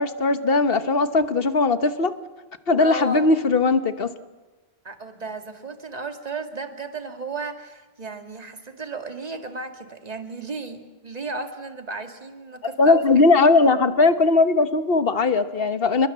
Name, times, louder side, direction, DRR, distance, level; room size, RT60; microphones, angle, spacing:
voice 1, 0.0-2.1 2.7-4.1 12.8-16.1, left 3 dB, 65° left, 11 dB, 1.4 m, -19 dB
voice 2, 2.8-3.3 4.8-13.2, right 3 dB, 40° right, 6 dB, 2.0 m, -34 dB
28.0 x 21.5 x 7.5 m, 1.2 s
omnidirectional pair, 1.0 m